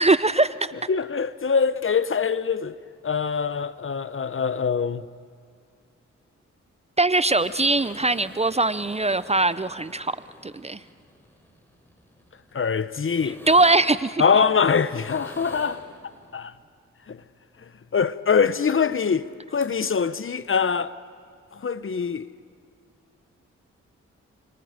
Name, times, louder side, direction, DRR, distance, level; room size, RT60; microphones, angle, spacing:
voice 1, 0.0-0.7 7.0-10.2 10.4-10.8 13.5-14.2, right 2 dB, 20° right, 0.6 m, -21 dB
voice 2, 0.9-2.8 3.0-5.0 12.5-13.4 14.2-15.8 16.3-16.5 17.1-17.2 17.9-20.9 21.5-22.3, left 6 dB, 45° left, 0.8 m, -23 dB
sound 1, 7.3-16.4 19.3-19.4 19.6-20.0 20.4-20.5, equal, 5° left, 4.9 m, -47 dB
30.0 x 25.0 x 5.1 m
cardioid pair, 50°, 30 cm